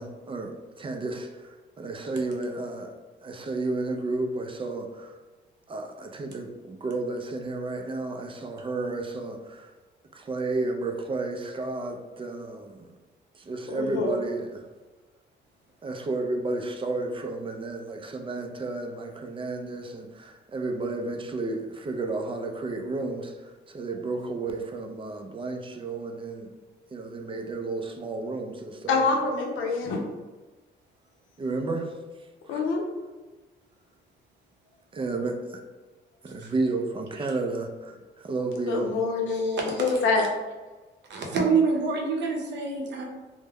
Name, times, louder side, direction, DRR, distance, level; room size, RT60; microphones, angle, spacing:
voice 1, 0.0-3.0 3.2-5.2 5.7-9.7 10.1-12.9 13.3-14.7 15.8-26.5 26.9-29.0 31.4-31.9 32.5-32.6 34.9-35.3 36.2-38.9, right 3 dB, 25° right, 3 dB, 0.4 m, -32 dB
voice 2, 13.7-14.2 28.9-30.0 32.5-32.8 38.7-40.2, left 3 dB, 80° left, 1 dB, 0.6 m, -26 dB
voice 3, 39.3-39.9 41.1-43.0, right 4 dB, 65° right, 0 dB, 0.7 m, -27 dB
2.2 x 2.1 x 3.3 m, 1.3 s
cardioid pair, 90°, 20 cm